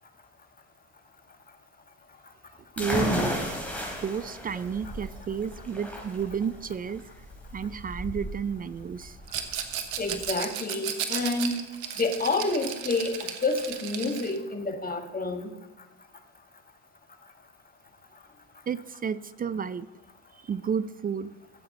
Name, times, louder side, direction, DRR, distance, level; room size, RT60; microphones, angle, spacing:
sound 1, 2.8-10.2, left 1 dB, 5° left, 3.6 m, -34 dB
voice 1, 2.8-3.7 4.0-7.0 7.5-9.2 18.7-19.9 20.4-21.3, right 7 dB, 25° right, 16 dB, 0.4 m, -31 dB
Rattle, 9.3-14.4, right 9 dB, 80° right, 1.3 m, -34 dB
voice 2, 10.0-11.6 12.0-15.5, left 3 dB, 20° left, 5 dB, 1.8 m, -29 dB
15.5 x 7.7 x 4.1 m, 1.2 s
hypercardioid pair, 70°, 40 cm